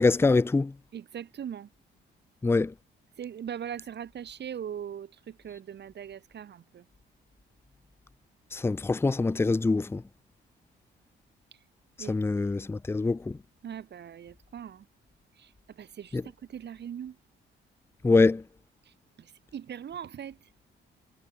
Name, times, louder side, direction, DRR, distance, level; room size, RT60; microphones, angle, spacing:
voice 1, 0.0-0.7 2.4-2.7 8.5-10.0 12.1-13.4 16.1-16.2 18.0-18.4, left 3 dB, 10° left, 0.5 m, -24 dB
voice 2, 0.9-1.7 3.2-6.9 11.5-11.6 12.0-12.2 13.6-14.9 15.3-17.2 18.8-20.5, right 9 dB, 60° right, 5.5 m, -40 dB
cardioid pair, 90°, 20 cm